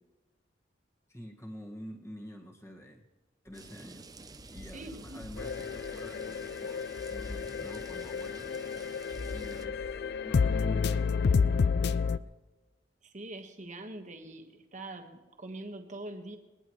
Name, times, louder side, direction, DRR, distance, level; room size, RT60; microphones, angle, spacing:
voice 1, 1.1-3.0 3.4-9.0 9.2-10.0 10.2-12.3, equal, 15° left, 0 dB, 1.7 m, -48 dB
sound 1, 3.5-10.6, left 2 dB, 90° left, 1.2 m, -47 dB
sound 2, 3.5-9.7, right 3 dB, 20° right, 0.6 m, -51 dB
voice 2, 4.7-5.2 13.0-16.4, right 2 dB, 45° right, 5 dB, 1.4 m, -43 dB
sound 3, 5.4-12.2, left 5 dB, 65° left, 0.4 m, -30 dB
20.0 x 19.0 x 3.2 m, 1.2 s
head